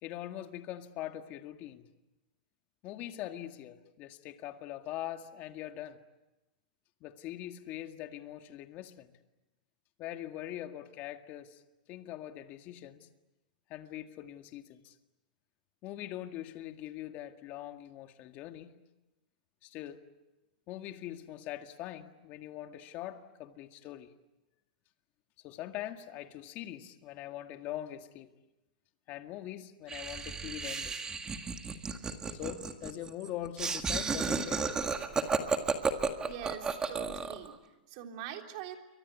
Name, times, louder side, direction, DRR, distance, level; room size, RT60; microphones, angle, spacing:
voice 1, 0.0-1.9 2.8-6.0 7.0-9.1 10.0-11.6 11.9-13.1 13.7-14.9 15.8-18.8 19.6-20.1 20.7-24.1 25.4-28.3 29.1-31.0 32.3-34.8, left 13 dB, 35° left, 1.9 m, -42 dB
Laughter, 29.9-37.5, right 5 dB, 15° right, 1.8 m, -33 dB
voice 2, 36.2-38.8, right 10 dB, 50° right, 3.6 m, -44 dB
29.0 x 24.0 x 8.3 m
hypercardioid pair, 140°, 5 cm